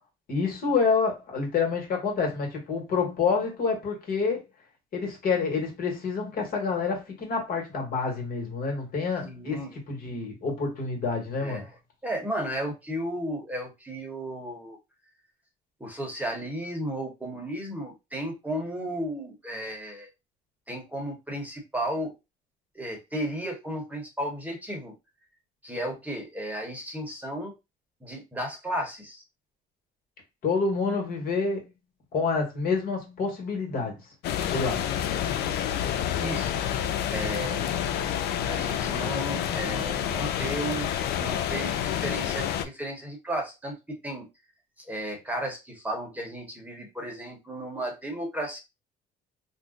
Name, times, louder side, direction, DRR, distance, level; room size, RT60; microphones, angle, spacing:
voice 1, 0.3-4.4 4.9-11.7 30.4-31.7 32.1-34.0 34.5-34.8, left 4 dB, 60° left, 1.4 m, -28 dB
voice 2, 9.2-9.7 11.4-11.7 12.0-14.8 15.8-20.1 20.7-22.1 22.7-24.9 25.6-27.5 28.0-29.2 36.2-36.5 37.1-37.8 38.5-40.9 41.2-43.8 44.0-44.3 44.9-48.6, right 1 dB, 10° right, 1.0 m, -34 dB
sound 1, 34.2-42.6, left 10 dB, 75° left, 0.4 m, -28 dB
2.6 x 2.1 x 3.8 m
cardioid pair, 110°, 17 cm